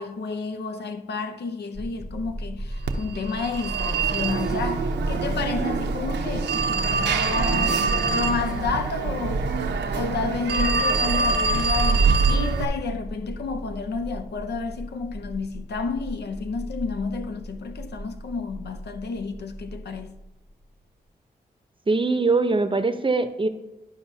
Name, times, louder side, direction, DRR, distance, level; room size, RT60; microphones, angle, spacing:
voice 1, 0.0-7.8 8.1-9.4 9.9-20.1, left 5 dB, 70° left, 0.7 m, -31 dB
sound 1, 1.7-20.6, equal, 45° left, 2.0 m, -36 dB
Telephone, 2.9-12.7, right 4 dB, 85° right, 0.7 m, -24 dB
voice 2, 21.9-23.5, right 3 dB, 30° right, 0.7 m, -22 dB
12.0 x 4.6 x 2.7 m
cardioid pair, 55°, 18 cm